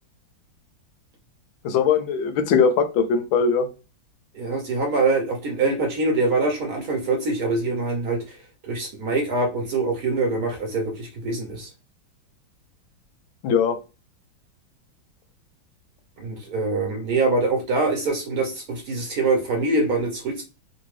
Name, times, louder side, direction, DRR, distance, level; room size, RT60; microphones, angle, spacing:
voice 1, 1.6-3.7 13.4-13.8, left 6 dB, 80° left, 8 dB, 1.4 m, -20 dB
voice 2, 4.3-11.7 16.2-20.4, right 3 dB, 60° right, 2 dB, 1.0 m, -24 dB
3.8 x 2.6 x 3.0 m, 0.30 s
omnidirectional pair, 2.2 m